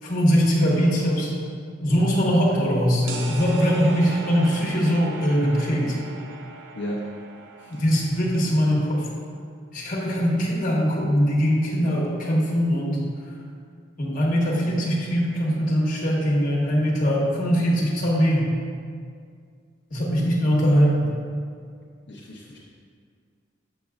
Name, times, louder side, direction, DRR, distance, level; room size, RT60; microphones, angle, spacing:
voice 1, 0.0-1.3 1.8-6.0 7.7-9.1 9.7-13.0 14.0-18.5 19.9-21.1, equal, 45° left, -5 dB, 1.2 m, -21 dB
voice 2, 2.2-2.6 6.7-7.1 7.6-7.8 22.1-22.6, equal, 70° left, -5 dB, 0.6 m, -35 dB
sound 1, 3.1-8.6, right 3 dB, 75° right, 0.5 m, -39 dB
7.3 x 6.2 x 2.4 m, 2.2 s
head